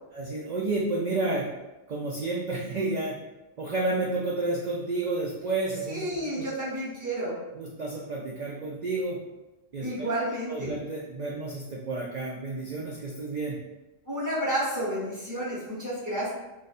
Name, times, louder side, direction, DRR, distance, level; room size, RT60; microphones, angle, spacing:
voice 1, 0.1-1.5 1.9-3.2 3.6-6.4 7.6-9.2 9.7-10.1 10.5-13.6, right 2 dB, 75° right, -4 dB, 0.4 m, -31 dB
voice 2, 5.9-7.4 9.8-10.7 14.1-16.3, right 1 dB, 20° right, -6 dB, 0.7 m, -31 dB
2.5 x 2.3 x 4.1 m, 1.0 s
omnidirectional pair, 1.3 m